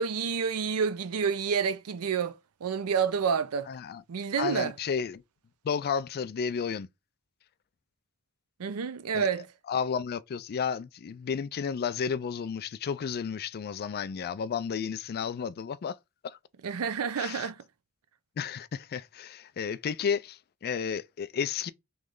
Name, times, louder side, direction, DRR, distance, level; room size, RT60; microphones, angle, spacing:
voice 1, 0.0-3.7 4.1-4.8 8.6-9.5 16.6-17.6, right 6 dB, 85° right, 0.5 m, -29 dB
voice 2, 3.7-4.0 4.4-5.2 5.6-6.9 9.1-9.3 9.7-16.0 16.2-16.4 17.2-17.5 18.4-21.7, left 6 dB, 45° left, 0.3 m, -32 dB
3.2 x 3.1 x 3.6 m
head